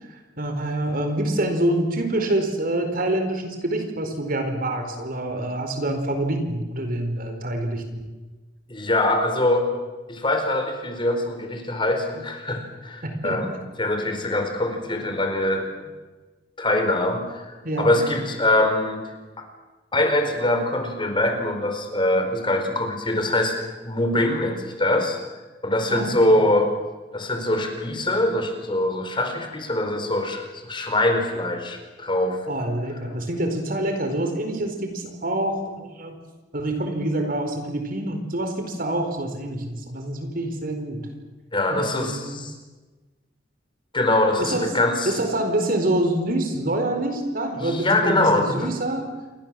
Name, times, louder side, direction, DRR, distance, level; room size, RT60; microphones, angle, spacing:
voice 1, 0.1-8.0 13.0-13.4 17.6-18.0 25.9-26.4 32.5-36.2 36.5-41.1 41.7-42.4 44.4-44.7 45.0-49.1, right 1 dB, 50° right, 6 dB, 4.4 m, -26 dB
voice 2, 8.7-9.7 10.1-15.7 16.6-19.0 19.4-19.5 19.9-23.5 23.8-25.2 25.6-26.7 27.1-32.4 41.5-42.5 43.9-45.1 47.6-48.7, left 1 dB, 25° left, 5 dB, 4.6 m, -23 dB
28.5 x 24.0 x 7.6 m, 1.2 s
head